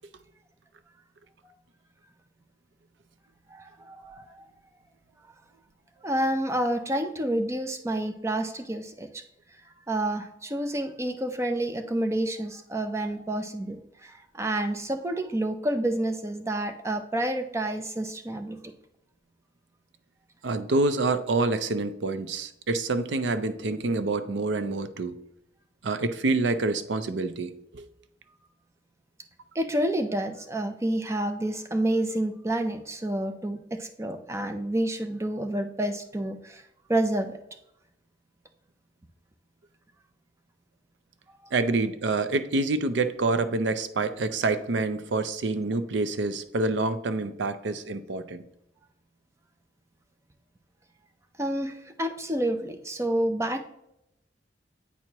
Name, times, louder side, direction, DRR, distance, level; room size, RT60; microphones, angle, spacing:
voice 1, 3.5-4.4 6.0-9.2 9.9-18.6 29.5-36.6 36.9-37.4 51.4-53.6, right 1 dB, 15° right, 6 dB, 0.5 m, -29 dB
voice 2, 20.4-25.2 25.8-27.9 41.5-48.4, right 3 dB, 85° right, 11 dB, 0.5 m, -27 dB
8.4 x 4.5 x 2.9 m, 0.82 s
head